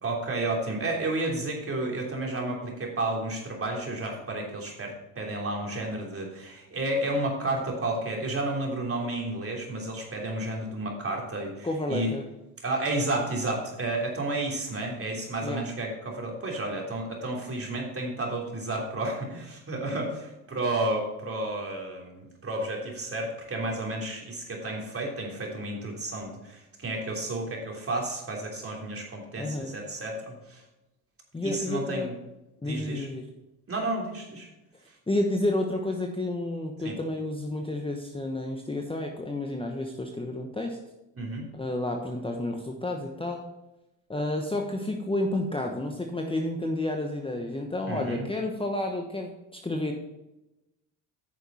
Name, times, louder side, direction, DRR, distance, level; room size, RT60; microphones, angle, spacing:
voice 1, 0.0-12.1 12.6-30.6 31.4-32.1 32.6-33.1 33.7-34.5 34.9-35.0 36.8-37.0 41.2-41.5 47.9-48.2, right 2 dB, 30° right, 0 dB, 3.2 m, -31 dB
voice 2, 11.6-12.3 15.4-15.7 29.4-29.7 31.3-32.1 32.6-33.2 35.1-40.8 41.5-43.4 44.1-49.9, left 1 dB, 10° left, 2 dB, 1.1 m, -30 dB
9.7 x 6.5 x 4.3 m, 0.95 s
hypercardioid pair, 70°, 45 cm